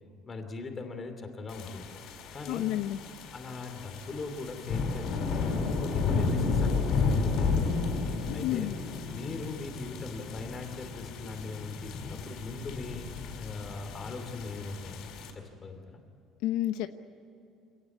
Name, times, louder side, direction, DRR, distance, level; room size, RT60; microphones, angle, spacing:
voice 1, 0.3-1.9 2.3-2.7 3.3-7.7 8.3-8.7 9.1-13.1 13.3-16.0, left 3 dB, 20° left, 6 dB, 2.8 m, -40 dB
sound 1, 1.5-15.3, left 4 dB, 55° left, 4.5 m, -32 dB
voice 2, 2.5-3.0 8.3-8.8 16.4-16.9, left 14 dB, 80° left, 8 dB, 0.9 m, -30 dB
26.0 x 18.0 x 9.6 m, 2.6 s
cardioid pair, 175°, 0 cm